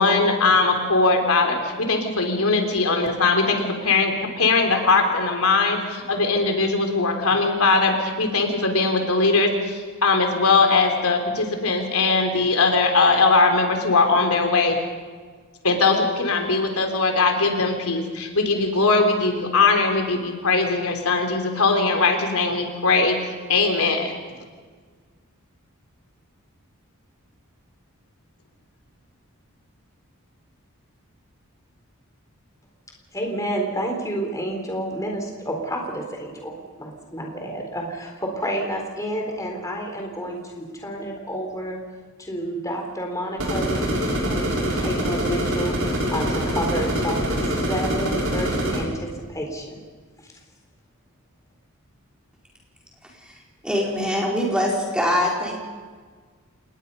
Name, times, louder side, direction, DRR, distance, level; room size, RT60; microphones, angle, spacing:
voice 1, 0.0-14.8 15.6-24.1, left 3 dB, 80° left, 4 dB, 3.5 m, -20 dB
voice 2, 33.1-41.8 42.2-47.4 47.7-49.8, right 1 dB, 15° left, 1 dB, 3.9 m, -30 dB
sound 1, 43.4-48.8, equal, 65° right, 6.4 m, -24 dB
voice 3, 53.6-55.6, equal, 5° right, -3 dB, 4.6 m, -23 dB
27.5 x 20.5 x 5.5 m, 1.5 s
head